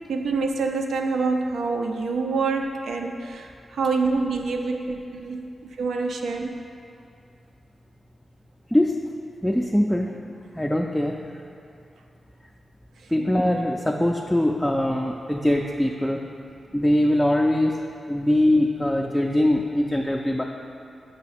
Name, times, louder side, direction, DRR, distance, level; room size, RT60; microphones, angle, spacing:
voice 1, 0.1-5.4 5.8-6.5, right 4 dB, 90° right, 3 dB, 0.5 m, -26 dB
voice 2, 9.4-10.2 10.6-11.2 13.1-16.2 16.7-17.8 18.1-20.4, left 1 dB, 5° left, 0 dB, 0.4 m, -22 dB
6.7 x 4.7 x 4.2 m, 2.6 s
cardioid pair, 85°, 0 cm